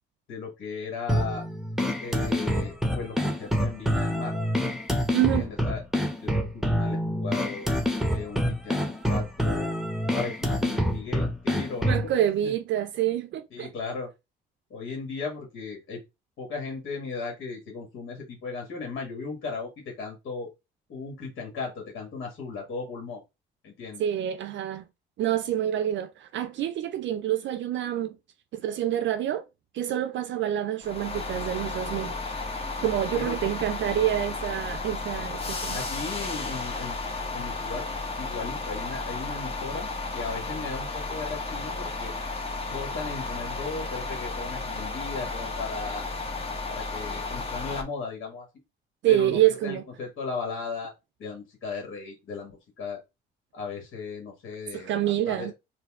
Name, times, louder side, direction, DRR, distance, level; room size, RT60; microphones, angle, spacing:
voice 1, 0.3-1.5 2.0-4.3 5.3-5.8 6.2-7.7 8.1-9.7 10.1-12.1 12.4-12.5 13.5-14.1 14.7-16.0 16.4-20.5 20.9-23.2 23.6-24.0 33.1-33.4 35.7-37.0 37.3-37.9 38.2-39.9 40.1-42.1 42.7-46.1 46.7-48.5 49.1-50.9 51.2-53.0 53.5-55.5, left 4 dB, 75° left, 1.7 m, -36 dB
sound 1, 1.1-12.1, equal, ahead, 0.9 m, -27 dB
voice 2, 5.1-5.5 11.9-13.7 24.0-24.8 25.2-28.2 28.5-29.4 29.7-32.1 32.8-35.8 49.0-49.8 54.7-55.5, right 12 dB, 70° right, 0.4 m, -27 dB
sound 2, 30.8-47.8, left 3 dB, 30° left, 1.1 m, -33 dB
4.3 x 2.7 x 3.6 m
cardioid pair, 90°, 20 cm